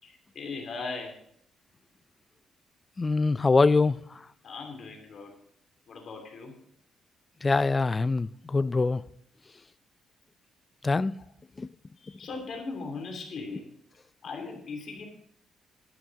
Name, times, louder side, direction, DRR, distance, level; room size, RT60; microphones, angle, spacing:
voice 1, 0.0-1.2 4.4-5.3 5.9-6.5 12.0-13.7 14.2-15.1, left 4 dB, 60° left, 2.9 m, -38 dB
voice 2, 3.0-4.0 7.4-9.0 10.8-11.1 11.6-11.7, left 3 dB, 25° left, 0.4 m, -23 dB
11.0 x 9.0 x 4.8 m
cardioid pair, 90°, 0 cm